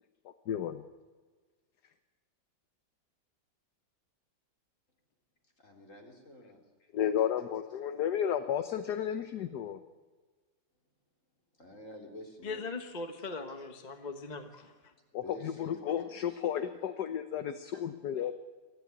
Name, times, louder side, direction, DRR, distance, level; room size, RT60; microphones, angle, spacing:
voice 1, 0.5-0.8 6.9-9.8 15.1-18.3, left 9 dB, 65° left, 10 dB, 1.4 m, -33 dB
voice 2, 5.6-6.6 7.0-7.1 11.6-12.7 13.2-13.7 15.2-16.5 17.7-17.9, left 1 dB, 40° left, 2 dB, 4.0 m, -50 dB
voice 3, 12.4-14.7, left 3 dB, 25° left, 7 dB, 1.3 m, -40 dB
24.0 x 15.5 x 9.6 m, 1.4 s
omnidirectional pair, 2.0 m